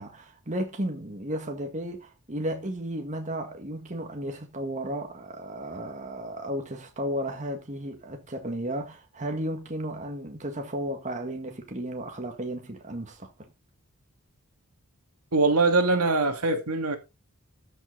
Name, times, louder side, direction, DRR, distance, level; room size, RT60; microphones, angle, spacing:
voice 1, 0.0-13.5, right 1 dB, 35° right, 1.8 m, -34 dB
voice 2, 15.3-17.0, right 3 dB, 85° right, 2.4 m, -22 dB
13.5 x 6.1 x 4.0 m
head